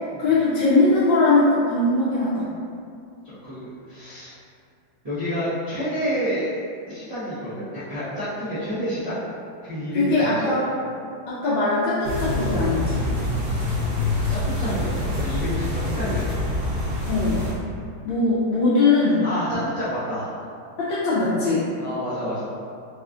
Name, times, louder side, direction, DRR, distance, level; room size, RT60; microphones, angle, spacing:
voice 1, 0.2-2.5 9.9-10.6 11.3-13.1 17.1-17.4 18.0-19.2 20.8-21.6, left 3 dB, 75° left, -11 dB, 1.4 m, -20 dB
voice 2, 3.2-4.3 5.0-6.6 6.9-9.2 9.6-10.5 14.2-16.3 19.2-20.3 21.8-22.5, equal, 55° right, -16 dB, 0.4 m, -29 dB
sound 1, 12.0-17.5, left 1 dB, 70° right, 1.9 m, -25 dB
4.2 x 2.3 x 2.5 m, 2.4 s
omnidirectional pair, 2.2 m